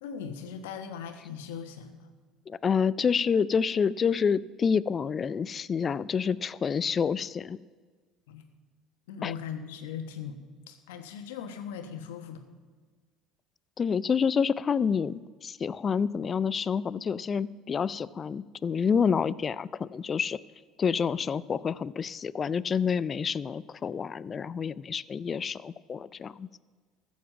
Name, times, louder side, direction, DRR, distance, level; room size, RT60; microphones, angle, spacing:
voice 1, 0.0-2.1 8.3-8.5 9.1-10.4 10.7-12.4, left 7 dB, 80° left, 7 dB, 1.2 m, -39 dB
voice 2, 2.5-7.6 9.2-9.3 13.8-20.4 20.8-26.5, left 6 dB, 35° left, 19 dB, 0.4 m, -28 dB
14.5 x 7.2 x 7.3 m, 1.5 s
hypercardioid pair, 70°, 0 cm